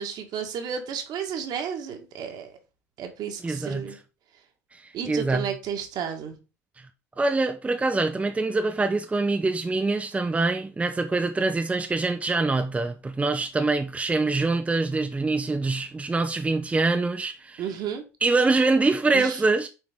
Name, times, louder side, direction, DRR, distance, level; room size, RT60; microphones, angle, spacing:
voice 1, 0.0-2.6 3.0-4.0 4.9-6.4 17.6-18.0 19.1-19.4, right 7 dB, 55° right, 1.7 m, -32 dB
voice 2, 3.4-3.8 4.7-5.5 7.2-17.6 18.2-19.7, right 3 dB, 15° right, 0.8 m, -24 dB
7.9 x 4.6 x 3.7 m
hypercardioid pair, 65°, 9 cm